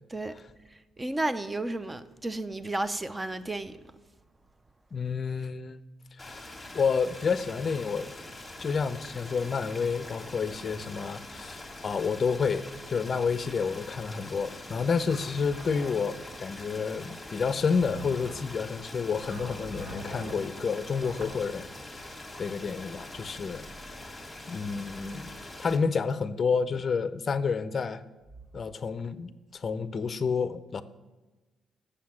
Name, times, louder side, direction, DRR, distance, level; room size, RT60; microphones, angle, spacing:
voice 1, 0.1-0.4 1.0-3.8, right 2 dB, 20° right, 0.6 m, -32 dB
voice 2, 4.9-5.8 6.2-6.5 6.7-8.1 8.6-21.7 22.4-23.6 24.5-25.3 25.6-28.0 28.5-30.8, left 5 dB, 40° left, 0.5 m, -29 dB
sound 1, 6.2-25.8, left 1 dB, 10° left, 1.7 m, -44 dB
Zipper (clothing), 14.9-16.4 17.2-18.5 19.3-20.4 21.0-21.4, right 1 dB, 60° right, 2.2 m, -44 dB
7.5 x 6.7 x 7.2 m
cardioid pair, 90°, 0 cm